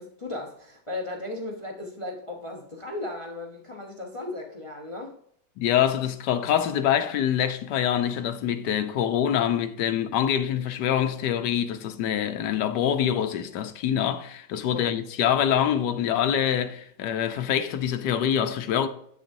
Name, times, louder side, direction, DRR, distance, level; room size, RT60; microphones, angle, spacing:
voice 1, 0.0-5.1 14.7-14.9, left 2 dB, 25° left, 0.6 m, -36 dB
voice 2, 5.6-18.9, left 9 dB, 75° left, 1.3 m, -25 dB
8.1 x 6.9 x 2.7 m
omnidirectional pair, 1.9 m